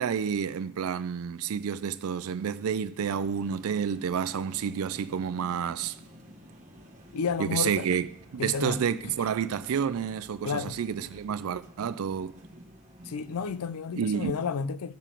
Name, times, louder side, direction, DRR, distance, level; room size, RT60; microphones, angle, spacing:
voice 1, 0.0-6.0 7.4-8.1 8.3-12.3 14.0-14.3, right 7 dB, 70° right, 0.4 m, -29 dB
sound 1, 3.1-13.7, equal, 35° right, 1.2 m, -51 dB
voice 2, 7.1-7.8 8.4-9.2 10.4-10.8 13.0-14.9, left 5 dB, 90° left, 0.5 m, -32 dB
11.5 x 6.9 x 4.5 m
head